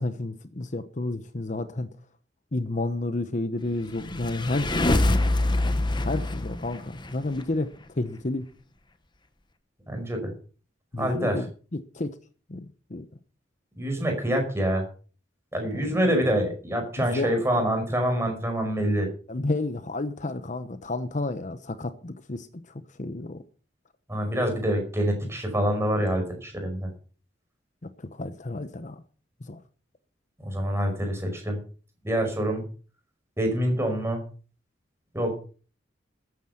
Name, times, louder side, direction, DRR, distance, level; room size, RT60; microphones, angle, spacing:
voice 1, 0.0-1.9 2.5-5.2 6.0-8.5 10.9-11.5 11.7-12.2 12.5-13.1 15.7-16.2 17.0-17.6 19.3-22.5 23.0-23.4 28.1-29.0 29.5-29.6, left 2 dB, 45° left, 0.9 m, -31 dB
sound 1, 3.8-7.4, left 1 dB, 25° left, 1.1 m, -25 dB
voice 2, 9.9-10.3 11.0-11.5 13.8-14.9 15.5-19.1 24.1-26.9 30.4-31.6 32.0-32.6 33.4-34.2 35.1-35.3, equal, 15° right, 5.3 m, -26 dB
14.5 x 9.6 x 5.8 m
head